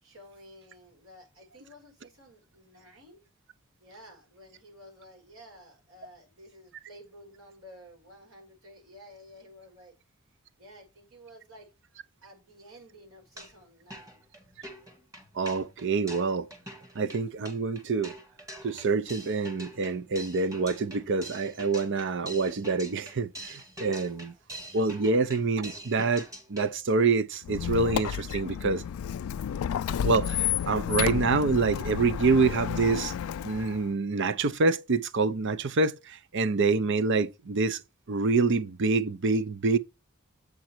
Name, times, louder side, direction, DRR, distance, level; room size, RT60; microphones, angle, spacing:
voice 1, 0.0-3.2 3.8-10.0 10.6-11.7 12.2-14.2, equal, 75° right, 5.3 m, -52 dB
sound 1, 13.2-13.6 13.9-26.8, right 1 dB, 15° right, 1.9 m, -45 dB
voice 2, 15.4-16.5 17.0-18.1 18.6-24.3 24.7-28.8 30.0-33.1 33.4-37.8 38.1-39.8, right 4 dB, 55° right, 0.6 m, -26 dB
Squeak, 27.4-33.9, left 9 dB, 75° left, 0.3 m, -31 dB
7.7 x 5.2 x 4.4 m
head